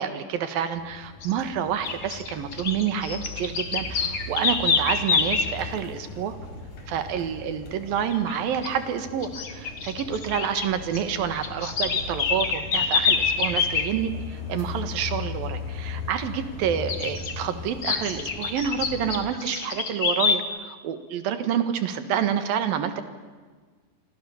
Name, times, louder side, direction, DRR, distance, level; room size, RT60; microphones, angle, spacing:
voice 1, 0.0-6.4 6.9-23.0, right 8 dB, 75° right, 10 dB, 3.3 m, -28 dB
sound 1, 0.7-19.1, left 4 dB, 70° left, 6.8 m, -38 dB
sound 2, 1.2-1.4 1.8-5.5 8.1-8.4 8.6-8.8 9.2-10.7 10.9-13.9 16.9-17.3 17.8-20.4, left 5 dB, 45° left, 2.0 m, -26 dB
28.0 x 25.0 x 7.2 m, 1.5 s
omnidirectional pair, 4.2 m